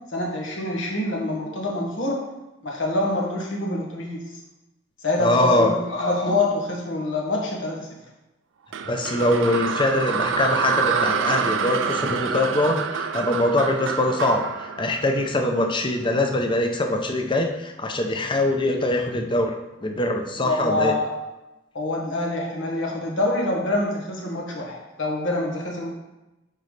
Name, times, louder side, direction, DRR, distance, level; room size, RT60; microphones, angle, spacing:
voice 1, 0.1-2.2 2.6-4.2 5.0-7.9 20.4-21.1 21.7-25.9, left 2 dB, 85° left, -1 dB, 1.5 m, -26 dB
voice 2, 5.2-5.7 8.9-19.5 19.8-20.9, left 1 dB, 25° left, 4 dB, 0.6 m, -23 dB
sound 1, 8.7-15.9, right 6 dB, 75° right, 0.4 m, -27 dB
9.2 x 4.0 x 3.3 m, 1.0 s
head